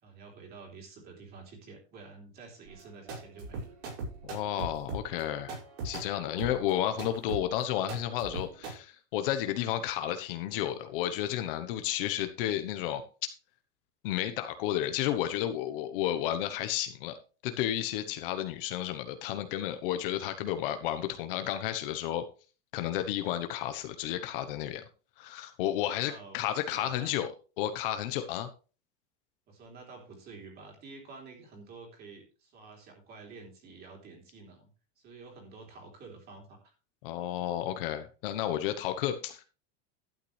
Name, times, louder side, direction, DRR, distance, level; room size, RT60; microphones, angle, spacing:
voice 1, 0.0-3.7 25.9-26.4 26.6-27.1 29.5-34.7 35.0-36.7, right 4 dB, 25° right, 1 dB, 3.4 m, -49 dB
sound 1, 2.7-8.7, right 3 dB, 65° right, 6.1 m, -39 dB
voice 2, 4.2-5.6 5.8-13.0 14.0-17.2 17.4-22.2 22.7-24.8 25.2-27.3 27.6-28.5 37.0-39.4, left 12 dB, 50° left, 8 dB, 1.1 m, -32 dB
12.0 x 9.0 x 3.3 m, 0.35 s
supercardioid pair, 170°, 35 cm